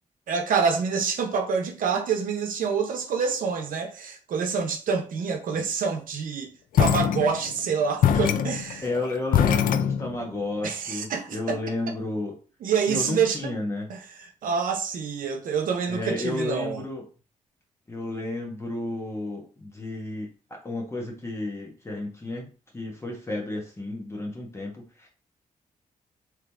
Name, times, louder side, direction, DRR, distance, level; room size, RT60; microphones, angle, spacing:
voice 1, 0.3-6.5 6.8-8.9 10.6-11.6 12.6-13.5 13.9-14.0 14.4-16.8, right 6 dB, 80° right, 0.8 m, -27 dB
sound 1, 6.7-7.6 8.0-10.4, left 9 dB, 80° left, 0.4 m, -23 dB
voice 2, 8.8-12.3 12.9-13.9 15.9-17.0 17.9-20.3 20.6-25.1, left 2 dB, 20° left, 1.3 m, -32 dB
3.7 x 3.1 x 3.5 m
cardioid pair, 125°, 14 cm